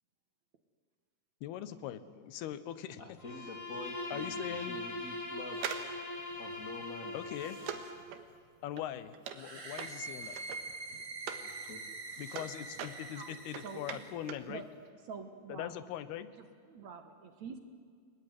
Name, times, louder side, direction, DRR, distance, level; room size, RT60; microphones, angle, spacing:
voice 1, 1.4-3.0 4.1-4.8 7.1-7.6 8.6-10.4 12.2-14.7 15.5-16.3, left 11 dB, 85° left, 14 dB, 3.1 m, -41 dB
voice 2, 3.0-5.8 6.4-7.2 11.4-11.8, left 2 dB, 30° left, 5 dB, 1.9 m, -47 dB
Bowed string instrument, 3.2-8.1, left 2 dB, 5° left, 2.6 m, -41 dB
sound 1, 5.5-11.5 11.9-14.5 14.8-14.9, right 8 dB, 85° right, 3.4 m, -44 dB
sound 2, 9.3-14.1, right 3 dB, 35° right, 1.0 m, -45 dB
voice 3, 13.6-14.0 14.4-14.7 15.1-15.7 16.4-17.6, right 5 dB, 55° right, 7 dB, 2.5 m, -46 dB
30.0 x 20.5 x 9.8 m, 2.1 s
omnidirectional pair, 4.4 m